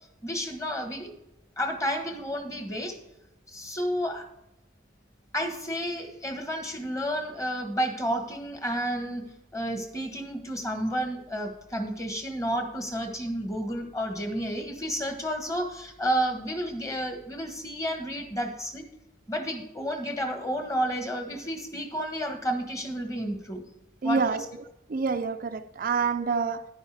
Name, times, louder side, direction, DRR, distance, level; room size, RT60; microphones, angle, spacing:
voice 1, 0.2-1.1 1.6-3.0 3.5-4.2 5.3-9.2 9.5-18.9 19.3-23.6 24.0-24.4, equal, 15° left, 1.2 m, -31 dB
voice 2, 24.0-24.5 24.9-26.7, right 5 dB, 45° right, 0.4 m, -27 dB
11.0 x 9.7 x 3.4 m
head